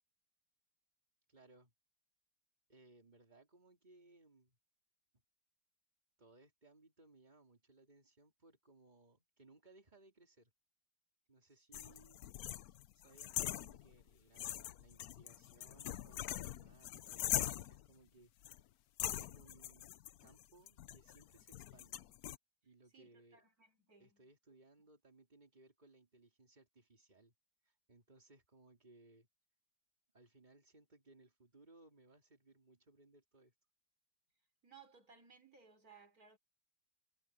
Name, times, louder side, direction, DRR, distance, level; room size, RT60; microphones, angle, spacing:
voice 1, 1.3-1.7 2.7-4.6 6.2-10.5 11.3-12.2 12.9-18.3 19.0-20.0 20.2-22.0 22.6-23.4 24.0-27.3 27.6-29.3 30.1-33.5, right 2 dB, 25° right, 3.5 m, -65 dB
sound 1, 11.7-14.1 14.4-17.9 18.4-18.6 19.0-22.4, left 12 dB, 65° left, 1.1 m, -42 dB
voice 2, 22.9-24.3 34.6-36.4, right 6 dB, 55° right, 5.3 m, -62 dB
omnidirectional pair, 1.9 m